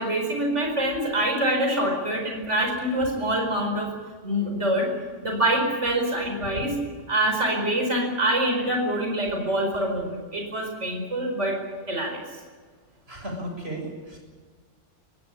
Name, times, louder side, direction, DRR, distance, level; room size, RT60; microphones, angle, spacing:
voice 1, 0.0-3.9 4.2-4.9 5.2-6.8 7.1-11.6 11.9-12.2, right 1 dB, 75° right, 2 dB, 5.2 m, -25 dB
voice 2, 13.1-14.2, right 1 dB, 55° right, 1 dB, 7.5 m, -34 dB
23.5 x 16.5 x 9.9 m, 1.5 s
omnidirectional pair, 1.3 m